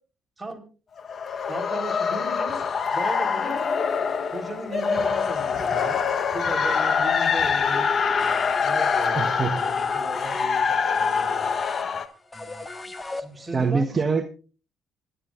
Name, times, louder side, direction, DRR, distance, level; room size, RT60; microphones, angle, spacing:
sound 1, 1.0-12.1, left 6 dB, 55° left, 1.2 m, -24 dB
voice 1, 1.5-3.6 4.3-6.0 6.3-7.9 8.6-11.5 13.1-13.9, right 2 dB, 20° right, 2 dB, 4.2 m, -36 dB
sound 2, 8.2-13.7, left 2 dB, 25° left, 1.5 m, -38 dB
voice 2, 9.1-9.6 13.5-14.2, right 4 dB, 40° right, 5 dB, 1.3 m, -24 dB
25.5 x 11.5 x 2.6 m, 0.36 s
hypercardioid pair, 50°, 0 cm